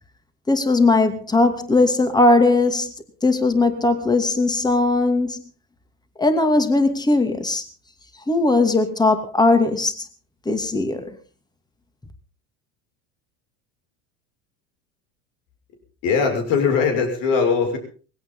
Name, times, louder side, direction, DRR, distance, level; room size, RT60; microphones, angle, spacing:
voice 1, 0.5-2.9 3.2-5.4 6.2-7.6 8.3-9.9 10.5-11.1, left 2 dB, 10° left, 2.6 m, -18 dB
voice 2, 16.0-17.8, left 5 dB, 65° left, 6.6 m, -20 dB
20.0 x 17.0 x 4.0 m
supercardioid pair, 105°, 35 cm